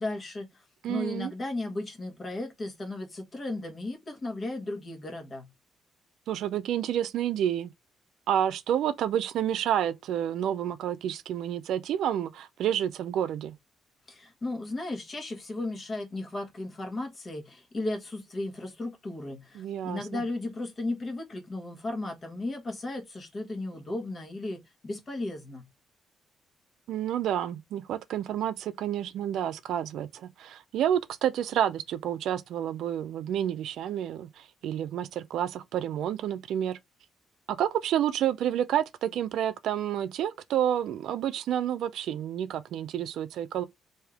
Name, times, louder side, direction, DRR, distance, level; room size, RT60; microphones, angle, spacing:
voice 1, 0.0-5.5 14.1-25.7, left 2 dB, 35° left, 1.2 m, -35 dB
voice 2, 0.8-1.3 6.3-7.7 8.3-13.6 19.6-20.2 26.9-36.8 37.5-43.6, right 10 dB, 80° right, 0.4 m, -29 dB
3.3 x 2.7 x 3.4 m
cardioid pair, 90°, 0 cm